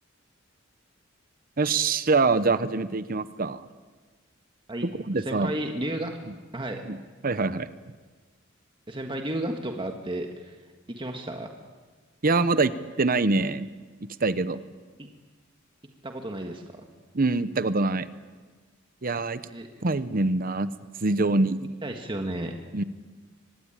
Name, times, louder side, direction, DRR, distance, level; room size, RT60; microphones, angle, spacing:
voice 1, 1.6-3.7 5.1-5.5 6.8-7.0 7.2-7.7 12.2-12.7 13.0-13.7 14.2-14.6 17.1-18.1 19.0-19.4 19.8-20.7 21.0-21.7 22.7-22.8, right 3 dB, 45° right, 14 dB, 0.9 m, -24 dB
voice 2, 5.2-6.2 6.5-6.9 8.9-10.6 10.9-11.5 15.0-15.1 16.0-16.8 19.5-19.7 21.8-22.5, right 1 dB, 25° right, 3 dB, 1.6 m, -33 dB
24.5 x 20.0 x 9.0 m, 1.4 s
head